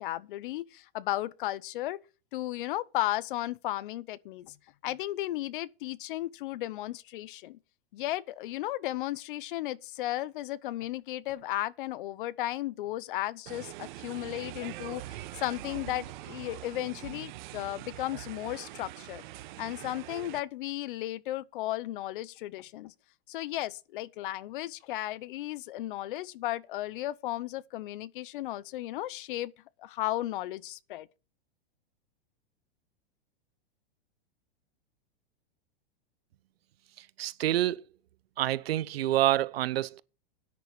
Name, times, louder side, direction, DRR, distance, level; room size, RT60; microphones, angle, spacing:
voice 1, 0.0-2.0 2.3-4.6 4.8-7.6 7.9-19.2 19.6-22.9 23.3-29.5 29.8-31.1, left 15 dB, 60° left, 0.8 m, -35 dB
sound 1, 13.5-20.4, right 15 dB, 50° right, 0.9 m, -43 dB
voice 2, 37.0-37.8 38.4-40.0, right 14 dB, 75° right, 0.8 m, -27 dB
12.0 x 9.8 x 4.6 m
hypercardioid pair, 145°, 30 cm